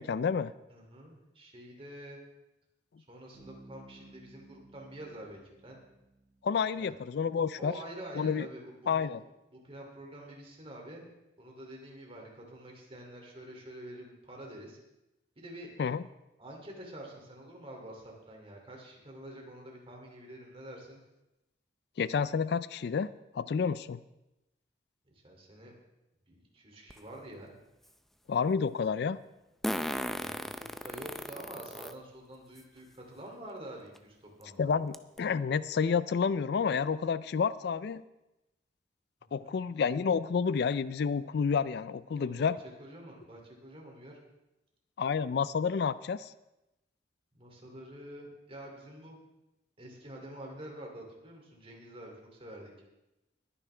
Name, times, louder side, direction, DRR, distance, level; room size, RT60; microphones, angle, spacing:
voice 1, 0.0-0.5 6.4-7.7 8.2-8.5 8.9-9.2 15.8-16.0 22.0-23.1 23.3-24.0 28.3-29.2 34.6-38.0 39.3-42.6 45.0-46.3, left 6 dB, 65° left, 17 dB, 0.4 m, -29 dB
voice 2, 0.7-2.2 3.1-5.8 6.7-6.9 7.6-9.2 9.5-11.1 11.4-14.8 15.4-15.7 16.4-21.0 25.2-25.7 26.3-27.5 30.2-34.7 39.2-39.6 42.1-42.5 42.8-44.2 47.3-49.2 49.8-52.7, right 1 dB, 30° right, 0 dB, 2.8 m, -47 dB
Bass guitar, 3.3-7.1, right 2 dB, 45° left, 5.0 m, -56 dB
Fart, 26.9-27.0 29.6-31.9 32.6-32.7 34.0-34.1 34.4-34.5 34.9-35.2, equal, ahead, 0.5 m, -35 dB
21.0 x 9.7 x 3.4 m, 0.95 s
head